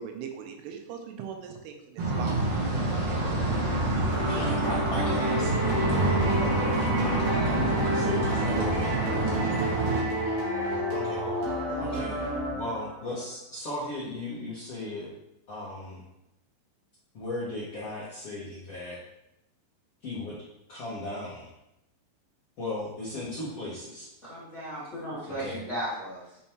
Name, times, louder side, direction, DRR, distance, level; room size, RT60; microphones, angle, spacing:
voice 1, 0.0-3.3, right 7 dB, 85° right, 4 dB, 3.3 m, -41 dB
sound 1, 2.0-10.0, right 2 dB, 65° right, 1.4 m, -27 dB
sound 2, 4.1-13.0, equal, 45° right, 3.0 m, -30 dB
voice 2, 4.2-9.0 10.9-11.2 11.8-15.1 15.5-16.0 17.1-19.0 20.0-20.3 20.7-21.5 22.6-24.1 25.4-25.6, left 1 dB, 85° left, -9 dB, 1.3 m, -37 dB
voice 3, 10.1-11.9 24.2-26.4, equal, 50° left, -11 dB, 0.8 m, -38 dB
9.3 x 5.5 x 3.0 m, 0.86 s
omnidirectional pair, 5.5 m